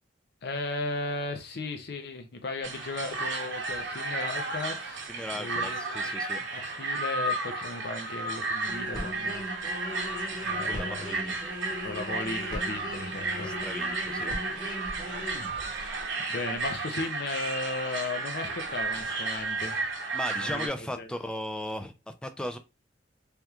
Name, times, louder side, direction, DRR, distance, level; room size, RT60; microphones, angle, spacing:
voice 1, 0.4-5.0 5.4-6.0 6.8-9.5 10.4-11.1 11.8-13.6 15.4-15.9 16.3-19.9 20.4-21.1, left 3 dB, 65° left, 0.6 m, -36 dB
sound 1, 2.6-20.7, right 3 dB, 80° right, 0.8 m, -33 dB
voice 2, 5.1-6.4 10.7-11.4 13.4-14.3 20.1-22.6, left 1 dB, 5° left, 0.3 m, -37 dB
sound 2, 8.7-16.1 16.5-16.7, left 1 dB, 25° left, 1.1 m, -39 dB
3.4 x 2.9 x 2.3 m
head